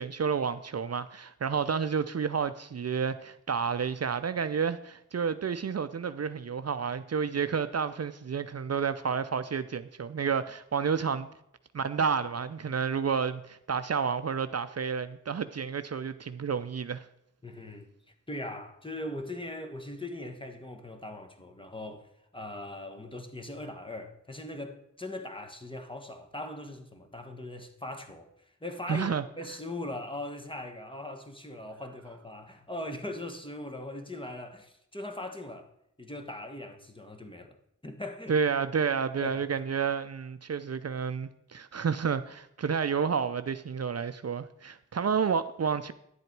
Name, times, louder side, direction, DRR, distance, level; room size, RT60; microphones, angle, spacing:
voice 1, 0.0-11.3 11.7-17.0 28.9-29.2 38.3-45.9, right 6 dB, 55° right, 0.5 m, -30 dB
voice 2, 17.4-17.9 18.3-35.7 36.0-37.6 37.8-38.3 39.2-39.5 45.0-45.1, left 1 dB, 15° left, 1.3 m, -40 dB
10.0 x 7.9 x 4.6 m
wide cardioid pair, 60°, 31 cm